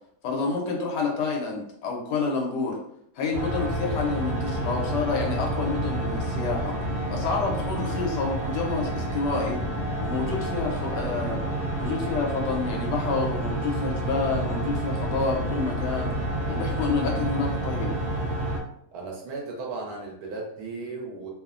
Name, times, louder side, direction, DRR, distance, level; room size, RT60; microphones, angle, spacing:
voice 1, 0.2-2.8 3.2-6.8 7.1-9.6 10.0-11.4 11.8-16.1 16.5-18.0, left 4 dB, 85° left, 0 dB, 1.3 m, -28 dB
sound 1, 3.3-18.6, right 1 dB, 45° right, 0.9 m, -29 dB
voice 2, 18.9-21.3, right 3 dB, 70° right, 0 dB, 1.1 m, -35 dB
3.0 x 2.0 x 2.4 m, 0.73 s
omnidirectional pair, 1.8 m